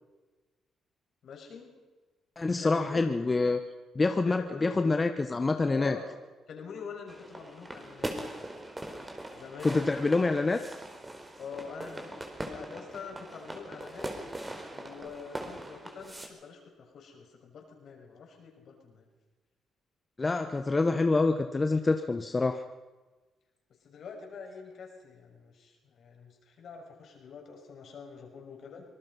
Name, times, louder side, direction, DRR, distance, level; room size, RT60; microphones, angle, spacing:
voice 1, 1.2-1.7 2.6-3.0 4.3-4.9 5.7-6.1 6.5-8.2 9.3-9.9 11.4-14.1 14.7-19.1 23.8-28.8, left 5 dB, 65° left, 2 dB, 6.3 m, -45 dB
voice 2, 2.4-3.6 3.9-6.0 9.6-10.6 20.2-22.6, left 3 dB, 25° left, 7 dB, 1.2 m, -26 dB
sound 1, 7.1-16.3, right 1 dB, 15° right, 4.0 m, -41 dB
25.5 x 19.0 x 5.5 m, 1.2 s
cardioid pair, 90°, 0 cm